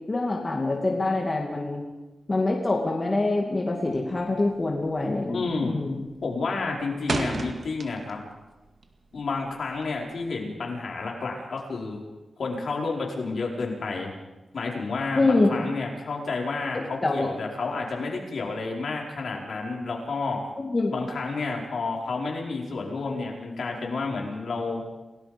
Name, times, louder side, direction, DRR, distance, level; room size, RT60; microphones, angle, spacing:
voice 1, 0.1-1.8 2.3-6.0 15.2-15.6 16.7-17.3 20.6-20.9, left 2 dB, 30° left, 0 dB, 2.5 m, -25 dB
sound 1, 3.9-4.2 4.5-4.9 5.2-5.7 6.0-8.3 8.6-10.1, right 3 dB, 55° right, 2.2 m, -33 dB
voice 2, 5.3-5.7 6.2-8.2 9.1-12.0 12.4-14.1 14.5-20.4 20.9-24.8, left 3 dB, 65° left, -1 dB, 5.1 m, -30 dB
28.5 x 18.0 x 5.3 m, 1.1 s
wide cardioid pair, 140°, 0 cm